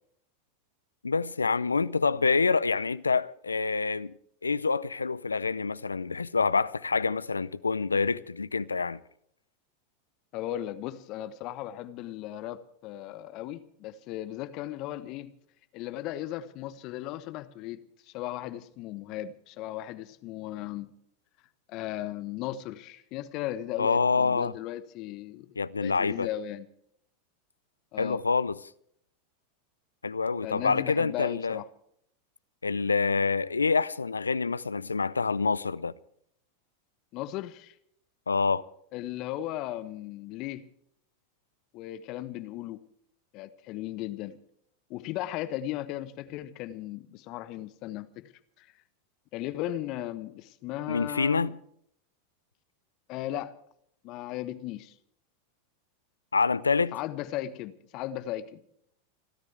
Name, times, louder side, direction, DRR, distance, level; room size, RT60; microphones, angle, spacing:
voice 1, 1.0-4.2 4.4-9.0 23.8-24.5 25.6-26.3 28.0-28.6 30.0-31.6 32.6-35.9 38.3-38.6 50.9-51.6 56.3-57.0, left 4 dB, 85° left, 0.6 m, -27 dB
voice 2, 10.3-15.3 15.7-20.9 21.7-26.7 27.9-28.2 30.4-31.7 37.1-37.7 38.9-40.7 41.7-42.8 43.3-44.4 44.9-48.3 48.6-48.7 49.3-51.5 53.1-53.6 54.0-54.9 56.9-58.6, left 13 dB, 45° left, 1.2 m, -36 dB
30.0 x 13.0 x 3.4 m
figure-of-eight pair, 90°, 0 cm